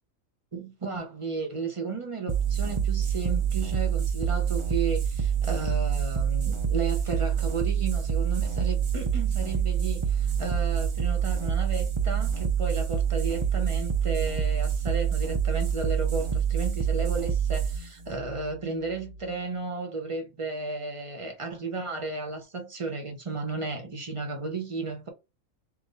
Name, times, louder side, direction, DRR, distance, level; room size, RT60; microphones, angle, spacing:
voice 1, 0.5-25.1, right 4 dB, 25° right, 0.8 m, -33 dB
sound 1, 2.3-19.3, right 7 dB, 45° right, 0.4 m, -27 dB
3.6 x 2.9 x 3.9 m
omnidirectional pair, 1.4 m